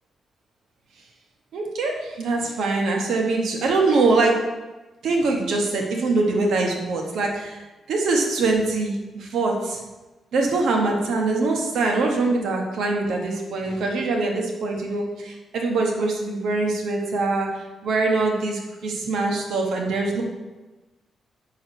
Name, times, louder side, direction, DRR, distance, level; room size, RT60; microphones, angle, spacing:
voice 1, 1.5-4.4 5.0-7.6 7.9-9.8 10.3-20.2, right 3 dB, 70° right, 1 dB, 1.2 m, -23 dB
5.4 x 4.7 x 6.3 m, 1.1 s
wide cardioid pair, 165°, 0 cm